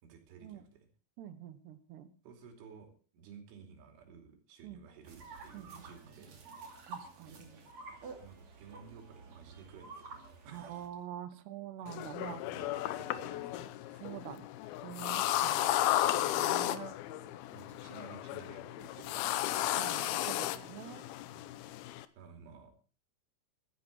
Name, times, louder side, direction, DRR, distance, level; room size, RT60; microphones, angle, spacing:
voice 1, 0.0-0.9 2.2-6.4 7.2-7.5 7.9-10.1 10.4-10.9 11.8-11.9 12.4-14.2 15.3-15.4 17.5-20.0 21.3-21.5 22.2-22.7, right 6 dB, 85° right, 4 dB, 5.3 m, -55 dB
voice 2, 1.2-2.1 4.6-4.8 5.5-5.7 6.9-7.5 10.5-12.4 14.0-14.5 14.8-15.7 16.1-16.9 19.7-21.1, right 10 dB, 70° right, 11 dB, 3.0 m, -46 dB
sound 1, 5.0-10.9, right 4 dB, 40° right, 3.4 m, -50 dB
sound 2, 11.9-22.1, left 14 dB, 85° left, 2.2 m, -34 dB
15.5 x 13.0 x 4.5 m, 0.38 s
omnidirectional pair, 5.4 m